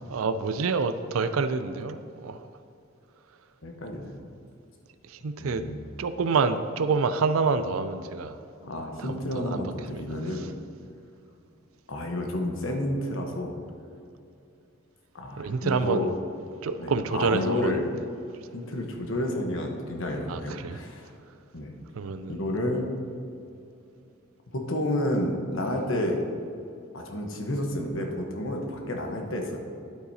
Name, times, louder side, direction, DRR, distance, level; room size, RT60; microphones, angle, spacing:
voice 1, 0.1-2.4 5.1-5.6 6.0-8.4 9.0-9.6 10.2-10.3 15.4-16.1 16.6-17.8 20.3-20.8 21.9-22.4, right 4 dB, 90° right, 11 dB, 0.5 m, -27 dB
voice 2, 3.6-4.3 5.4-5.9 8.6-10.5 11.9-13.6 15.1-16.1 16.8-17.8 18.5-21.1 21.5-21.8 22.3-22.9 24.5-26.2 26.9-29.6, left 1 dB, 70° left, 2 dB, 1.1 m, -30 dB
11.5 x 8.0 x 2.8 m, 2.6 s
head